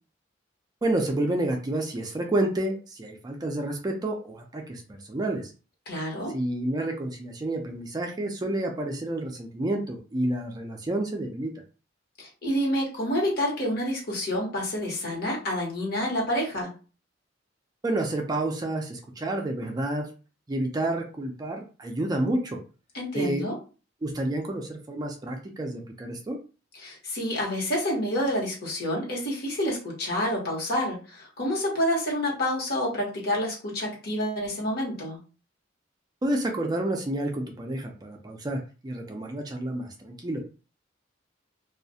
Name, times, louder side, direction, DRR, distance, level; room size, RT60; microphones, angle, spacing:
voice 1, 0.8-5.5 6.3-11.5 17.8-20.1 20.5-22.6 23.1-23.4 24.0-26.4 36.2-40.4, right 1 dB, 20° right, 2 dB, 0.4 m, -29 dB
voice 2, 5.9-6.3 12.2-16.7 22.9-23.5 26.8-35.2, equal, 55° left, -3 dB, 1.1 m, -28 dB
2.3 x 2.1 x 2.7 m, 0.34 s
head